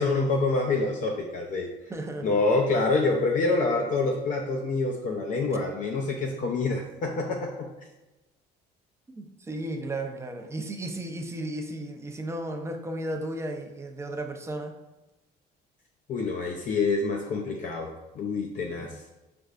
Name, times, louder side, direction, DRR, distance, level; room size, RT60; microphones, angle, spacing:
voice 1, 0.0-1.7 2.2-7.7 16.1-19.0, left 3 dB, 50° left, 0 dB, 0.5 m, -26 dB
voice 2, 1.9-2.4 9.1-14.8 18.8-19.0, right 1 dB, 15° right, 4 dB, 0.5 m, -34 dB
5.3 x 3.4 x 2.4 m, 1.0 s
cardioid pair, 110°, 17 cm